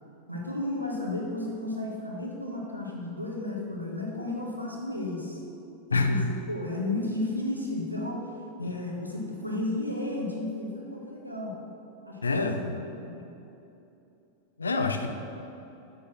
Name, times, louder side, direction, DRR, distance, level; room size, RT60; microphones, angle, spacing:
voice 1, 0.3-5.4 5.9-11.5 12.0-12.5 12.9-13.1, left 2 dB, 90° right, -2 dB, 1.4 m, -33 dB
voice 2, 5.9-6.3 8.6-8.9 12.2-12.9 14.6-15.1, left 3 dB, 75° left, 6 dB, 0.6 m, -27 dB
7.0 x 6.2 x 6.1 m, 2.9 s
figure-of-eight pair, 90°, 0 cm